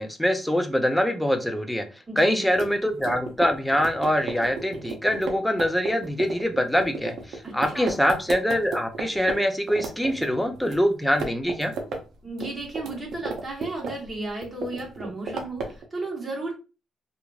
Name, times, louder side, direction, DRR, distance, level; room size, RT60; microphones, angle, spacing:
voice 1, 0.0-1.9 2.2-11.7, equal, 5° left, 6 dB, 0.5 m, -24 dB
voice 2, 2.1-2.5 7.4-7.9 12.2-16.5, right 2 dB, 25° right, -2 dB, 1.4 m, -34 dB
sound 1, 2.5-9.4 9.7-10.8 11.1-12.0 12.3-14.1 14.4-15.8, right 4 dB, 70° right, 0.7 m, -33 dB
2.9 x 2.5 x 2.4 m, 0.32 s
cardioid pair, 90°, 0 cm